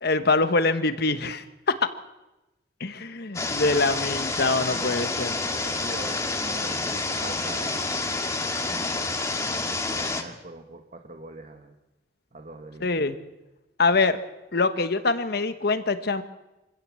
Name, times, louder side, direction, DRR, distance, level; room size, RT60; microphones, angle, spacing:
voice 1, 0.0-1.9 2.8-5.3 12.8-13.1 13.8-14.2 14.5-16.2, left 3 dB, 60° left, 10 dB, 1.2 m, -24 dB
sound 1, 3.3-10.2, left 3 dB, 15° left, 1.8 m, -28 dB
voice 2, 4.5-7.9 8.6-11.7 12.3-12.9, right 2 dB, 40° right, 4 dB, 1.5 m, -43 dB
25.0 x 16.0 x 7.6 m, 1.0 s
head